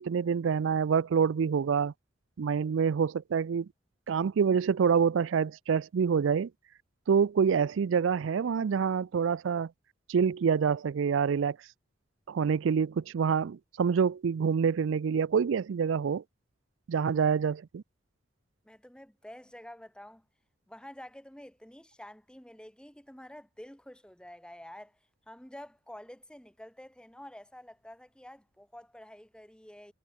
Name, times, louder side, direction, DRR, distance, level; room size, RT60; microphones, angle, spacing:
voice 1, 0.0-1.9 2.4-3.7 4.1-6.5 7.1-9.7 10.1-11.6 12.3-16.2 16.9-17.8, right 6 dB, 75° right, 0.4 m, -26 dB
voice 2, 18.6-20.3 20.7-25.0 25.3-29.9, left 1 dB, 5° left, 2.2 m, -49 dB
head